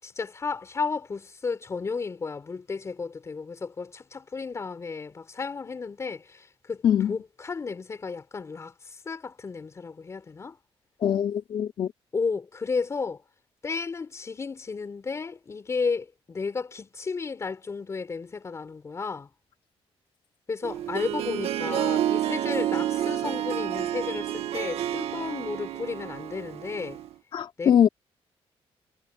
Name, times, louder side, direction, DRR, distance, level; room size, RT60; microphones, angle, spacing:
voice 1, 0.0-6.8 7.1-10.6 12.1-13.2 13.6-19.3 20.5-27.0 27.6-27.8, left 4 dB, 30° left, 4.3 m, -33 dB
voice 2, 6.8-7.2 11.0-11.9 27.3-27.9, left 9 dB, 55° left, 3.2 m, -22 dB
Harp, 20.6-27.1, right 11 dB, 80° right, 1.9 m, -29 dB
cardioid pair, 145°, 10 cm